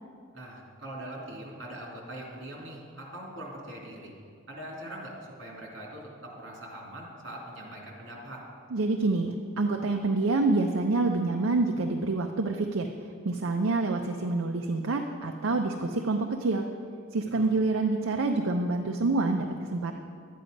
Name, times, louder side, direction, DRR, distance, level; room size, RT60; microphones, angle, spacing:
voice 1, 0.3-4.1 4.5-8.4 17.3-17.4, right 1 dB, 60° right, -3 dB, 3.0 m, -42 dB
voice 2, 8.7-12.9 13.2-16.7 17.1-19.9, right 3 dB, 75° right, 4 dB, 0.6 m, -27 dB
12.0 x 9.4 x 5.2 m, 2.2 s
head